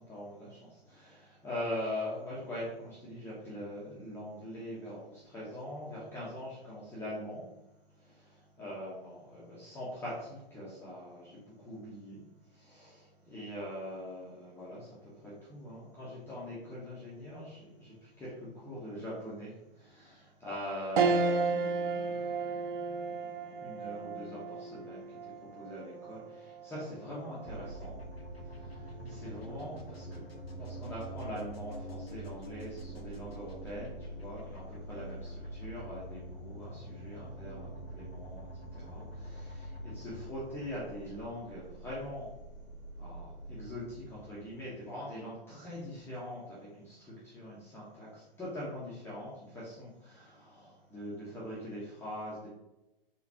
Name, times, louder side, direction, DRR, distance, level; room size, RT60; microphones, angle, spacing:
voice 1, 0.0-7.4 7.9-28.0 28.4-30.2 30.6-42.3 43.0-52.5, left 1 dB, 10° left, -9 dB, 1.1 m, -43 dB
sound 1, 21.0-30.6 31.0-31.1 32.5-32.9, right 4 dB, 55° right, 0.6 m, -35 dB
sound 2, 27.4-45.2, right 1 dB, 85° left, 0.8 m, -45 dB
4.0 x 4.0 x 2.8 m, 0.94 s
figure-of-eight pair, 115°, 29 cm